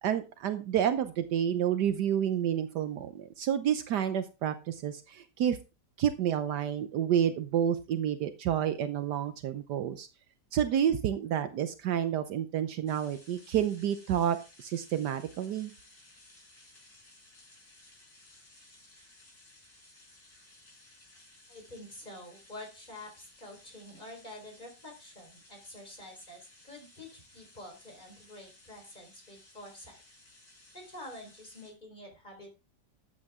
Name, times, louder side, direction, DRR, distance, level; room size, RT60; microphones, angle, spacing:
voice 1, 0.0-5.6 6.0-10.1 10.5-15.7, right 9 dB, 75° right, 10 dB, 1.4 m, -29 dB
sound 1, 12.9-31.7, left 2 dB, 90° left, 5.8 m, -58 dB
voice 2, 21.5-30.0 30.7-32.5, left 1 dB, 25° left, 2 dB, 4.3 m, -48 dB
13.5 x 8.6 x 3.6 m, 0.30 s
omnidirectional pair, 1.8 m